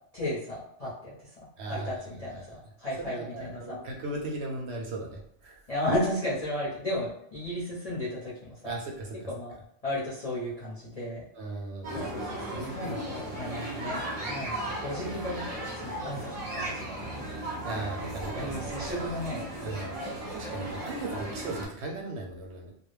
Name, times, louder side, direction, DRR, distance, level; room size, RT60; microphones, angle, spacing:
voice 1, 0.1-3.7 5.7-8.6 9.3-9.5 9.8-11.2 11.9-14.0 14.3-17.2 17.7-17.8 18.4-19.7, left 1 dB, 40° left, -8 dB, 0.6 m, -34 dB
voice 2, 1.6-1.9 2.3-2.5 3.0-5.7 8.6-9.3 11.4-12.1 17.6-18.9 19.6-20.0 20.3-22.7, right 2 dB, 70° right, 1 dB, 0.8 m, -37 dB
sound 1, 11.8-21.6, right 1 dB, 40° right, 0.6 m, -36 dB
2.4 x 2.0 x 3.1 m, 0.68 s
omnidirectional pair, 1.2 m